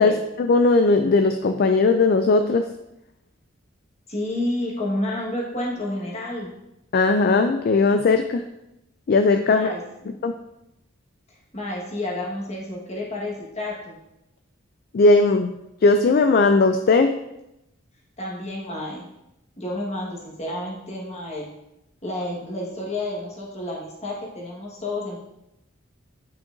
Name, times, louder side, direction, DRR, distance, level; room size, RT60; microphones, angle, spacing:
voice 1, 0.0-2.7 6.9-8.4 9.1-9.7 10.2-10.3 14.9-15.5 15.8-17.2, left 3 dB, 45° left, 7 dB, 0.3 m, -18 dB
voice 2, 4.1-6.5 9.5-10.3 11.5-14.0 18.2-19.1 19.6-21.5 22.0-25.2, left 1 dB, 30° left, -3 dB, 1.5 m, -30 dB
8.9 x 5.7 x 2.6 m, 0.88 s
head